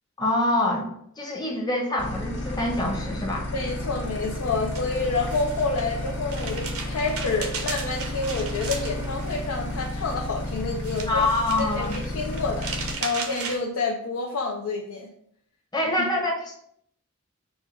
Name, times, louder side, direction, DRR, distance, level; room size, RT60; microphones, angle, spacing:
voice 1, 0.2-0.9 1.2-3.5 11.1-12.0 15.7-16.5, left 1 dB, 20° left, 0 dB, 0.8 m, -25 dB
sound 1, 2.0-12.9, left 2 dB, 55° left, 1.4 m, -32 dB
voice 2, 3.5-11.3 11.6-15.1 16.0-16.1, left 3 dB, 80° left, 0 dB, 0.5 m, -28 dB
sound 2, 4.1-13.6, right 5 dB, 70° right, 0.7 m, -37 dB
4.2 x 2.3 x 4.5 m, 0.69 s
head